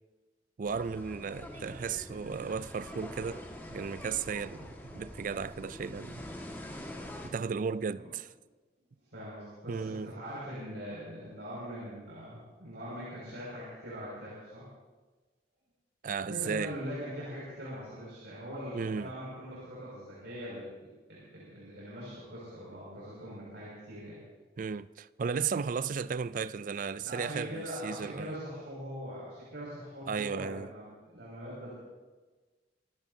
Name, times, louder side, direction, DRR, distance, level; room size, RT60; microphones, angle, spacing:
sound 1, 0.6-7.3, left 1 dB, 10° left, 1.7 m, -45 dB
voice 1, 0.6-3.4 3.7-6.2 7.2-8.3 9.7-10.1 16.0-16.8 18.7-19.1 24.6-28.3 30.1-30.7, right 6 dB, 45° right, 0.4 m, -35 dB
voice 2, 9.0-14.6 16.3-24.2 27.0-31.7, equal, 65° right, 6.2 m, -42 dB
26.5 x 16.0 x 2.8 m
head